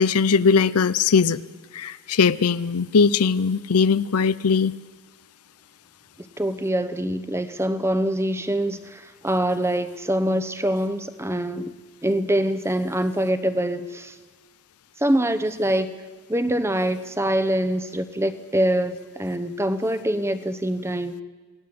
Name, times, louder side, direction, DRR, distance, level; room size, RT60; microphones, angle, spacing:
voice 1, 0.0-1.4 1.7-4.7, left 5 dB, 85° left, 16 dB, 0.6 m, -20 dB
voice 2, 6.4-11.7 12.0-14.1 15.0-15.9 16.3-21.1, right 1 dB, 10° right, 11 dB, 0.9 m, -24 dB
28.5 x 18.5 x 7.8 m, 1.4 s
head